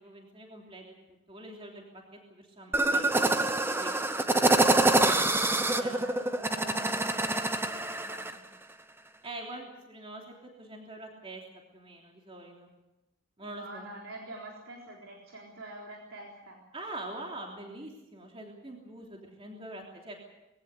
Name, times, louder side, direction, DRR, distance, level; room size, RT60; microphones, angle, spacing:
voice 1, 0.0-4.2 5.0-5.3 5.8-6.0 9.2-11.4 11.7-12.7 13.4-13.9 16.7-20.1, right 1 dB, 25° right, 0 dB, 3.2 m, -44 dB
sound 1, 2.7-8.3, right 2 dB, 10° right, 1.0 m, -26 dB
voice 2, 4.9-8.5 13.4-16.6, right 1 dB, 90° right, -1 dB, 3.9 m, -46 dB
21.5 x 17.5 x 8.3 m, 0.96 s
head